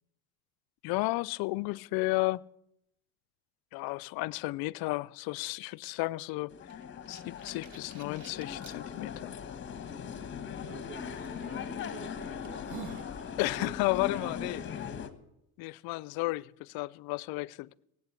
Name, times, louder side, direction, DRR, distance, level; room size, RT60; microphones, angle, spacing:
voice 1, 0.8-2.4 3.7-6.5 7.1-9.3 13.4-14.6 15.6-17.7, left 22 dB, 60° left, 0.6 m, -33 dB
sound 1, 6.5-15.1, left 7 dB, 30° left, 1.4 m, -40 dB
sound 2, 6.7-8.8 9.4-9.5 11.2-11.4 12.0-12.1 12.4-13.1, right 8 dB, 45° right, 1.6 m, -47 dB
voice 2, 10.6-14.6, right 7 dB, 70° right, 1.6 m, -49 dB
19.0 x 8.3 x 8.4 m
supercardioid pair, 110°, 41 cm